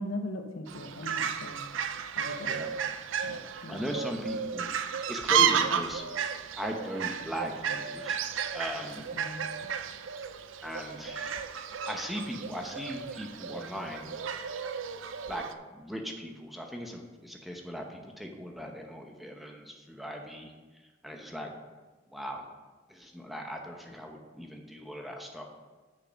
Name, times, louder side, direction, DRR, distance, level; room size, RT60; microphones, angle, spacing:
voice 1, 0.0-1.7 2.2-2.6 3.2-4.0 9.1-9.5, left 1 dB, 90° left, 6 dB, 0.9 m, -39 dB
Fowl, 0.7-15.5, right 7 dB, 80° right, 0.5 m, -33 dB
voice 2, 2.4-2.7 3.7-6.3 6.6-8.2 8.5-9.1 10.6-11.5 11.9-14.1 15.3-15.4 15.7-20.5 21.0-21.5 22.1-22.5 22.9-25.4, equal, ahead, 2 dB, 0.8 m, -38 dB
6.7 x 6.4 x 5.7 m, 1.3 s
head